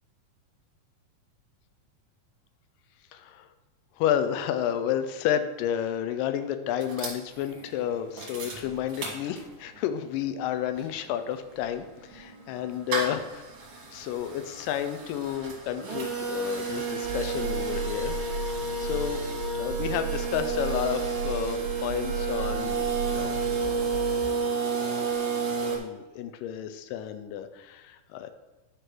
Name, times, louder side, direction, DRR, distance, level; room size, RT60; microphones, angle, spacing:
voice 1, 3.1-3.5 4.0-13.4 13.9-18.2 18.8-19.2 19.5-24.0 24.9-25.2 25.6-28.3, left 10 dB, 80° left, 9 dB, 2.2 m, -31 dB
sound 1, 6.8-9.8 10.2-10.3 10.4-25.8, right 4 dB, 50° right, 2.5 m, -31 dB
sound 2, 17.0-24.4, right 4 dB, 80° right, 2.2 m, -36 dB
9.8 x 3.3 x 6.0 m, 1.1 s
omnidirectional pair, 3.9 m